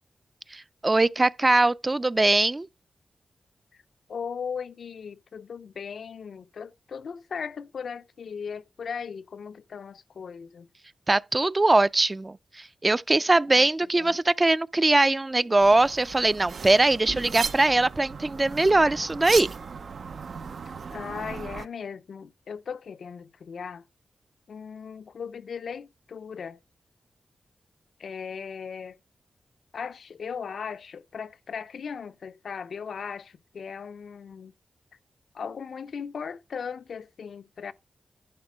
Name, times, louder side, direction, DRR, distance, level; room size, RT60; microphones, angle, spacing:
voice 1, 0.5-2.7 11.1-12.4 12.8-19.5, right 2 dB, 30° right, 0.4 m, -21 dB
voice 2, 4.1-10.7 13.5-13.7 14.0-14.2 20.9-23.9 24.5-26.6 28.0-29.0 29.7-34.5 35.3-37.7, left 6 dB, 80° left, 0.5 m, -37 dB
sound 1, 15.6-21.7, right 5 dB, 75° right, 0.6 m, -36 dB
11.0 x 4.3 x 6.1 m
cardioid pair, 60°, 0 cm